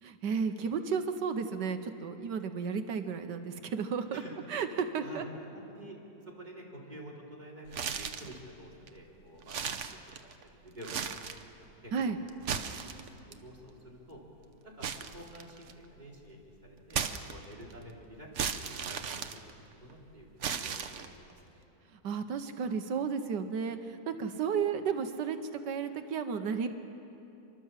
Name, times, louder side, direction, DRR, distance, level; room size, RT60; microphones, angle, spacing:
voice 1, 0.0-4.2 4.5-5.3 11.9-12.2 22.0-25.4 25.6-26.7, right 6 dB, 70° right, 8 dB, 1.5 m, -33 dB
voice 2, 5.0-6.0 6.2-11.2 11.6-12.1 12.5-12.7 13.3-14.2 14.6-17.0 17.3-21.6, equal, 25° right, -2 dB, 3.3 m, -49 dB
sound 1, 7.7-8.4 8.9-9.0 9.4-10.4 10.8-11.5 12.3-13.3 14.8-15.9 16.9-17.7 18.4-19.9 20.4-21.3, right 7 dB, 50° right, 0.9 m, -36 dB
29.0 x 12.5 x 7.4 m, 2.9 s
omnidirectional pair, 2.0 m